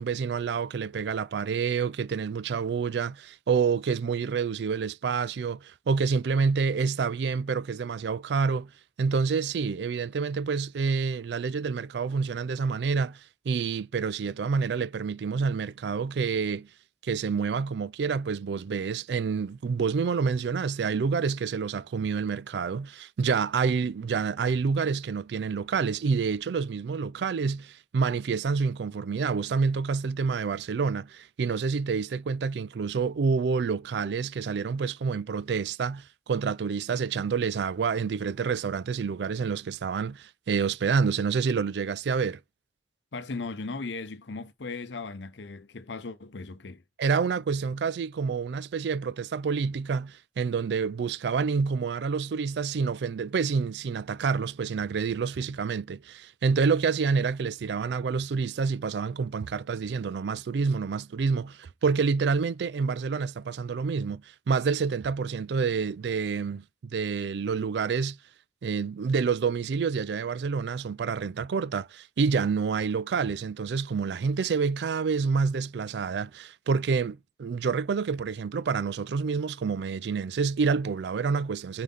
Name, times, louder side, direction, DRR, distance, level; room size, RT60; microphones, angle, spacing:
voice 1, 0.0-8.7 9.0-16.7 17.0-42.4 47.0-64.2 64.5-66.6 66.9-68.2 68.6-81.8, right 5 dB, 70° right, 0.4 m, -28 dB
voice 2, 43.1-46.8, left 3 dB, 90° left, 0.8 m, -37 dB
5.5 x 4.9 x 5.2 m
head